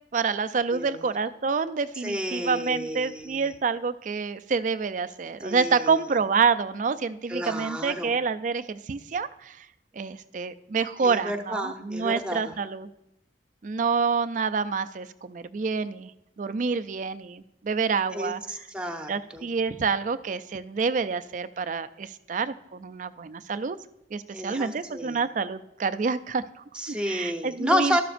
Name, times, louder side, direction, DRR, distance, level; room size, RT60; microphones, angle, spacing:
voice 1, 0.1-9.7 9.9-12.9 13.6-16.1 16.4-18.4 19.1-23.8 24.1-26.6 27.1-28.0, right 5 dB, 45° right, 13 dB, 0.4 m, -27 dB
voice 2, 0.7-1.1 2.0-3.5 5.4-6.0 7.3-8.2 11.0-12.5 18.1-19.5 24.3-25.2 26.7-28.0, equal, 5° right, 4 dB, 0.9 m, -31 dB
13.0 x 12.0 x 2.5 m, 0.88 s
head